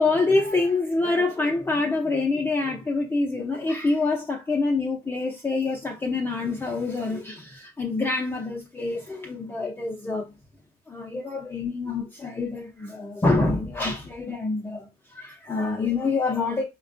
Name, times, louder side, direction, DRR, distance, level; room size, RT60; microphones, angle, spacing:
voice 1, 0.0-10.3 10.9-16.6, left 3 dB, 15° left, 0.6 m, -26 dB
4.5 x 2.2 x 2.5 m
cardioid pair, 110°, 17 cm